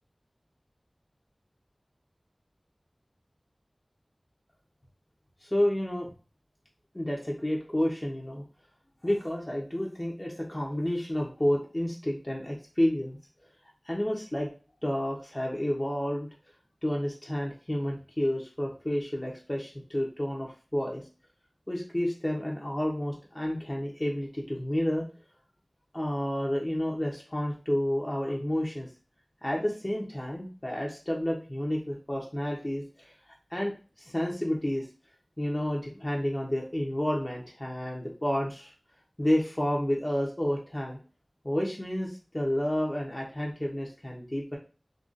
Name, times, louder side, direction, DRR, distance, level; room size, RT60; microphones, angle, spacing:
voice 1, 5.4-6.1 6.9-8.4 9.0-13.2 13.8-14.5 14.8-16.3 16.8-21.0 21.7-25.0 25.9-28.9 29.4-33.1 33.5-33.7 34.0-34.8 35.4-38.7 39.2-41.0 41.4-44.6, left 1 dB, 25° left, -2 dB, 0.7 m, -30 dB
3.9 x 2.4 x 2.5 m, 0.36 s
wide cardioid pair, 50°, 0 cm